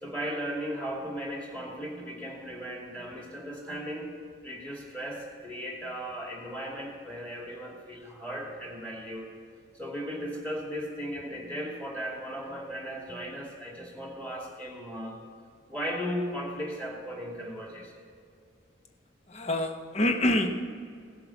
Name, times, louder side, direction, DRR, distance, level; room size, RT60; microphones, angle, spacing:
voice 1, 0.0-4.1 4.4-9.3 9.7-15.2 15.7-17.9, equal, 5° left, -1 dB, 2.4 m, -36 dB
voice 2, 19.3-20.6, left 1 dB, 30° left, 5 dB, 1.0 m, -26 dB
17.0 x 7.7 x 7.1 m, 2.3 s
head